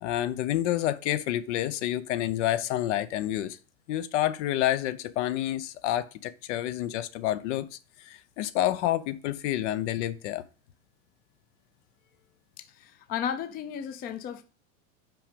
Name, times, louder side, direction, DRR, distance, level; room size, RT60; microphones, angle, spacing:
voice 1, 0.0-3.6 3.9-7.7 8.1-10.4, left 13 dB, 60° left, 0.7 m, -28 dB
voice 2, 12.6-14.4, left 8 dB, 25° left, 0.5 m, -34 dB
5.8 x 5.0 x 5.2 m
supercardioid pair, 145°, 40 cm